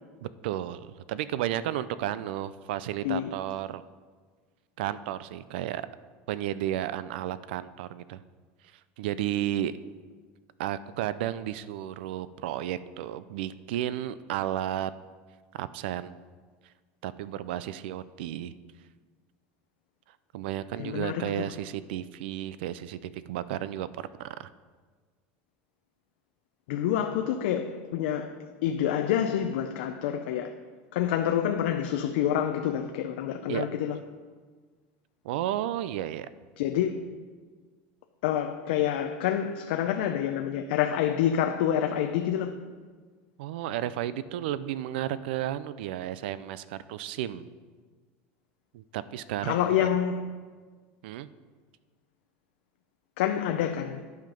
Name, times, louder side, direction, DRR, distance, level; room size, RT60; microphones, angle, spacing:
voice 1, 0.2-3.8 4.8-5.9 6.3-8.2 8.7-9.7 10.6-14.9 15.5-16.2 17.0-18.5 20.3-24.5 33.5-33.7 35.2-36.3 43.4-47.5 48.7-49.9 51.0-51.3, right 12 dB, 85° right, 0.4 m, -33 dB
voice 2, 20.8-21.2 26.7-28.3 28.6-30.5 30.9-34.0 36.6-37.0 38.2-42.5 49.4-50.2 53.2-54.0, left 10 dB, 85° left, 0.5 m, -27 dB
10.5 x 5.8 x 5.2 m
supercardioid pair, 160°, 5 cm